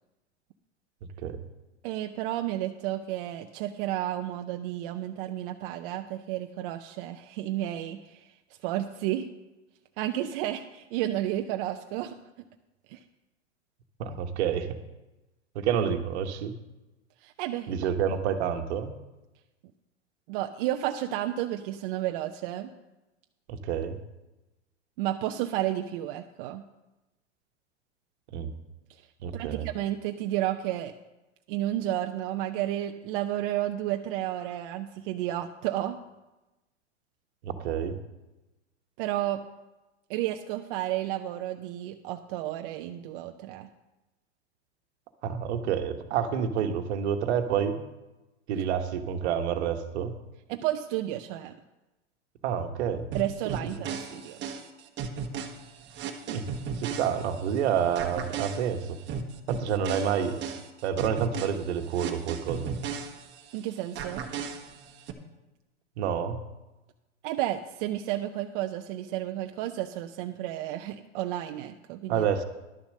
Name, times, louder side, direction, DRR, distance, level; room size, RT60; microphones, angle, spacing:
voice 1, 1.8-8.3 8.6-9.3 10.0-12.2 12.9-13.0 17.2-17.7 20.3-22.7 25.0-26.6 28.9-29.1 29.3-30.9 31.5-36.0 39.0-39.4 40.1-43.7 50.5-51.5 53.1-54.4 63.5-64.2 67.2-72.2, right 13 dB, 50° right, 6 dB, 0.6 m, -32 dB
voice 2, 14.0-14.7 15.5-16.5 17.7-18.9 23.5-24.0 28.3-28.5 29.2-29.7 37.4-38.0 45.2-47.8 48.5-50.1 52.4-53.0 56.3-56.4 56.8-59.0 59.5-60.4 60.8-62.7 66.0-66.4 72.1-72.4, right 8 dB, 65° right, 7 dB, 1.3 m, -28 dB
sound 1, 53.1-57.6 58.0-63.6 64.0-65.1, right 6 dB, 30° right, 1.3 m, -36 dB
11.5 x 7.1 x 6.5 m, 1.0 s
hypercardioid pair, 115°, 36 cm